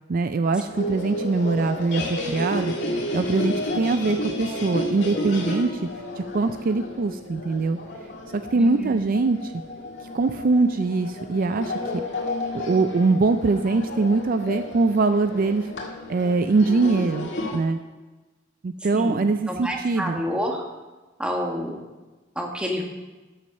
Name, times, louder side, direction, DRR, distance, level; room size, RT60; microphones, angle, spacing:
voice 1, 0.1-2.7 3.1-5.8 6.2-7.8 8.3-9.5 10.1-12.0 12.5-15.7 16.1-17.8 18.6-20.2, right 3 dB, 45° right, 9 dB, 0.4 m, -23 dB
sound 1, 0.6-17.6, left 1 dB, 65° left, 1.9 m, -32 dB
voice 2, 8.5-9.1 18.9-20.6 21.2-21.8 22.3-22.8, equal, 5° right, 1 dB, 1.5 m, -29 dB
13.0 x 7.5 x 5.3 m, 1.2 s
head